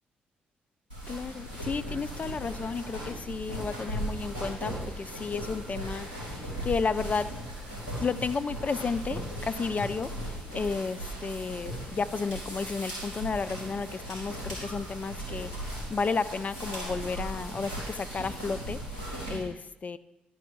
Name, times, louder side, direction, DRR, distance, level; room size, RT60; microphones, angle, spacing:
sound 1, 0.9-19.4, right 1 dB, 80° right, 2.9 m, -37 dB
voice 1, 1.1-7.3 8.0-18.8 19.3-20.0, left 5 dB, 30° left, 13 dB, 0.4 m, -32 dB
10.5 x 4.7 x 6.3 m, 0.95 s
figure-of-eight pair, 40°, 5 cm